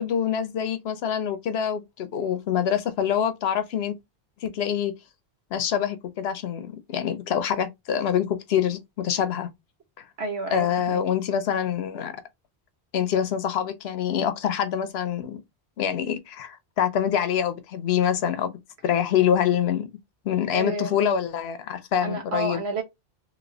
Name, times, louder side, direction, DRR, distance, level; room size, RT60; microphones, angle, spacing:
voice 1, 0.0-3.9 4.4-4.9 5.5-9.5 10.5-12.1 12.9-15.4 15.8-18.6 18.8-19.9 20.2-22.6, left 9 dB, 75° left, 0.8 m, -25 dB
voice 2, 10.2-11.0 20.5-20.9 22.0-22.8, right 3 dB, 75° right, 1.3 m, -30 dB
3.0 x 2.9 x 2.7 m
omnidirectional pair, 1.1 m